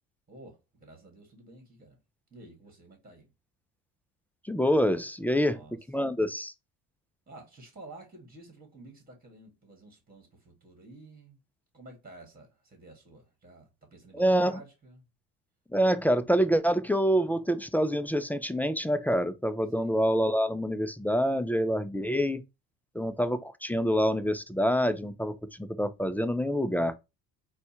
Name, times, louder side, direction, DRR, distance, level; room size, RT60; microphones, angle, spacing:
voice 1, 0.3-2.0 2.3-3.3 5.3-5.8 7.3-11.4 11.7-15.0 19.7-20.0 22.9-23.2, right 2 dB, 20° right, 2.1 m, -51 dB
voice 2, 4.5-5.6 5.9-6.5 14.1-14.6 15.7-22.4 22.9-25.3 25.6-26.9, equal, 5° left, 0.3 m, -26 dB
4.2 x 2.4 x 4.3 m
supercardioid pair, 70°, 42 cm